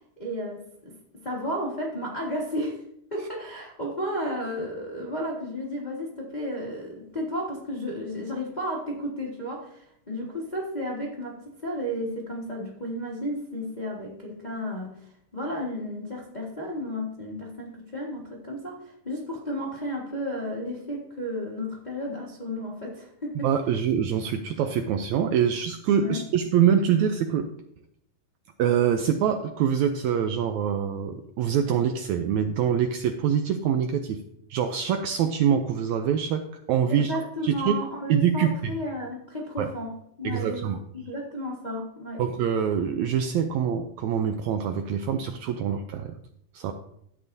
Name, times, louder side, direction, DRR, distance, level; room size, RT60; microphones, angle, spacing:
voice 1, 0.2-2.8 3.1-15.0 15.3-18.8 19.0-23.5 26.0-26.2 36.9-40.7 40.9-42.2, equal, 40° left, -3 dB, 0.6 m, -33 dB
voice 2, 23.4-27.5 28.6-34.2 34.5-36.4 36.7-37.1 37.4-37.7 38.1-38.7 39.6-39.7 40.2-40.8 42.2-46.2 46.5-46.7, right 8 dB, 80° right, 6 dB, 1.7 m, -24 dB
12.0 x 8.8 x 2.7 m, 0.73 s
omnidirectional pair, 3.8 m